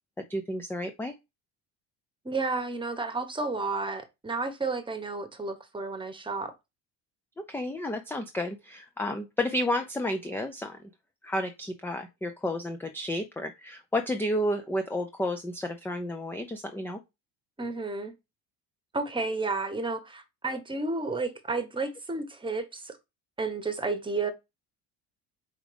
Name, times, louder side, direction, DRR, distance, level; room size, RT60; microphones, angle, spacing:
voice 1, 0.2-1.1 7.5-10.9 11.2-17.0, left 1 dB, 5° left, 0.5 m, -31 dB
voice 2, 2.2-6.5 17.6-18.1 18.9-22.9 23.4-24.3, right 3 dB, 10° right, 1.2 m, -32 dB
5.0 x 3.8 x 5.0 m
cardioid pair, 110°, 40 cm